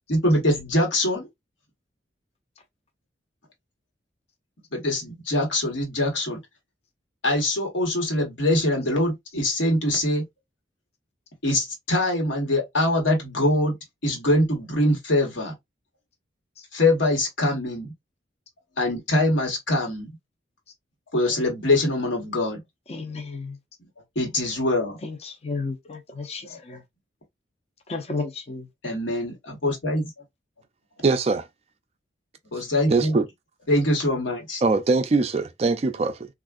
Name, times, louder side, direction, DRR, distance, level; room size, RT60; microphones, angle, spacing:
voice 1, 0.1-1.3 4.7-6.4 7.2-10.2 11.4-13.8 14.0-15.5 16.7-17.9 18.8-20.1 21.1-22.6 24.1-25.0 26.5-26.6 28.8-30.1 32.5-33.2 33.7-34.6, left 1 dB, 85° left, 1.3 m, -23 dB
voice 2, 22.9-23.5 25.0-26.8 27.9-28.6, left 3 dB, 35° left, 0.5 m, -33 dB
voice 3, 31.0-31.5 32.9-33.3 34.6-36.3, right 3 dB, 35° right, 0.3 m, -22 dB
3.4 x 2.4 x 2.3 m
head